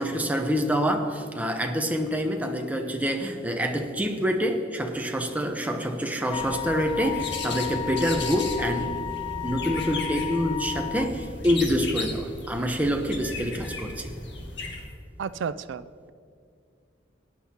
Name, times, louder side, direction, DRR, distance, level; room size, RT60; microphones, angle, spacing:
voice 1, 0.0-8.9 9.4-14.1, equal, 10° right, 4 dB, 0.8 m, -26 dB
sound 1, 6.3-14.8, left 2 dB, 65° left, 1.7 m, -36 dB
Wind instrument woodwind instrument, 6.3-11.1, left 13 dB, 25° left, 0.4 m, -33 dB
voice 2, 15.2-16.1, right 6 dB, 70° right, 14 dB, 0.4 m, -33 dB
17.0 x 10.5 x 2.9 m, 2.3 s
head